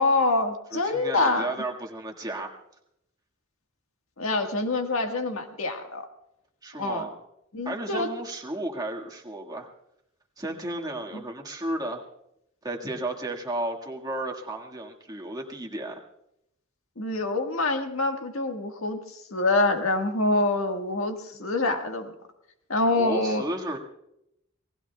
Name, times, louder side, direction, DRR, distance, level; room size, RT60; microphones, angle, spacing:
voice 1, 0.0-1.5 4.2-6.0 6.8-7.1 7.5-8.1 11.1-11.2 17.0-22.1 22.7-23.4, left 2 dB, 85° left, 4 dB, 1.6 m, -26 dB
voice 2, 0.7-2.5 6.6-7.2 7.7-9.7 10.4-12.0 12.6-16.0 23.0-23.8, right 1 dB, 20° right, 0 dB, 1.8 m, -33 dB
29.0 x 19.0 x 2.3 m, 0.81 s
head